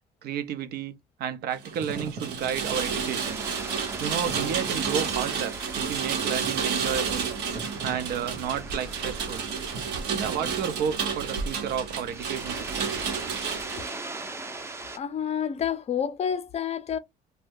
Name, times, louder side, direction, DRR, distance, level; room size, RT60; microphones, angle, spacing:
voice 1, 0.2-3.4 4.0-7.3 7.8-9.5 10.1-12.9, right 8 dB, 70° right, 0.6 m, -32 dB
Wind / Fire, 1.6-11.1, right 3 dB, 40° right, 0.8 m, -43 dB
Rain, 1.6-13.9, right 6 dB, 85° right, 0.9 m, -31 dB
sound 1, 2.6-15.0, right 2 dB, 15° right, 0.5 m, -41 dB
voice 2, 14.9-17.0, left 8 dB, 40° left, 0.5 m, -29 dB
2.6 x 2.2 x 3.5 m
cardioid pair, 110°, 17 cm